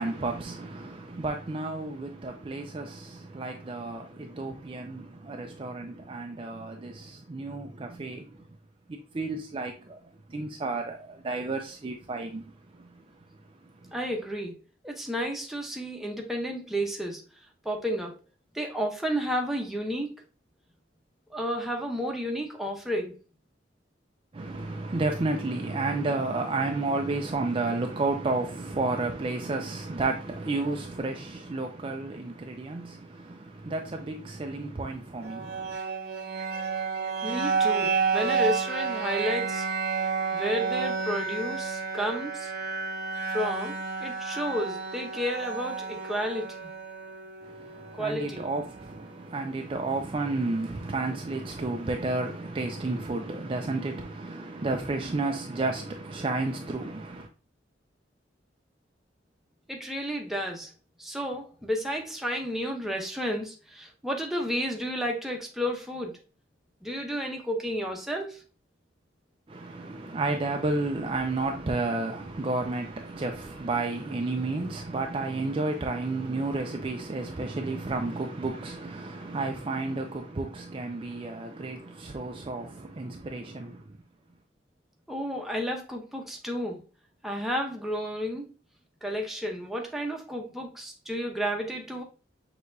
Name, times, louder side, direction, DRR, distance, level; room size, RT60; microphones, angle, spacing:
voice 1, 0.0-8.4 8.9-13.9 24.3-35.8 47.4-57.3 69.5-84.0, right 3 dB, 30° right, 0.4 m, -32 dB
voice 2, 13.9-17.2 17.6-18.2 18.5-20.1 21.3-23.2 37.2-39.7 40.3-42.5 43.3-46.7 48.0-48.5 59.7-60.7 61.0-66.2 66.8-68.4 85.1-86.8 87.2-88.5 89.0-92.0, equal, ahead, 0.8 m, -32 dB
sound 1, 35.2-49.2, right 5 dB, 60° right, 0.8 m, -31 dB
6.4 x 3.0 x 2.6 m
head